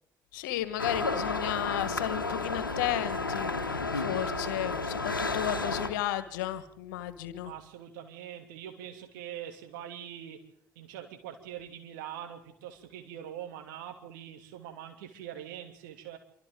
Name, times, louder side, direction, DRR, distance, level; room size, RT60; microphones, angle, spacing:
voice 1, 0.3-7.5, left 13 dB, 70° left, 12 dB, 1.7 m, -34 dB
sound 1, 0.8-5.9, left 3 dB, 85° left, 1.2 m, -32 dB
voice 2, 7.4-10.4 10.7-16.2, right 10 dB, 70° right, 4 dB, 2.9 m, -43 dB
27.0 x 25.0 x 3.9 m, 0.67 s
figure-of-eight pair, 50°, 11 cm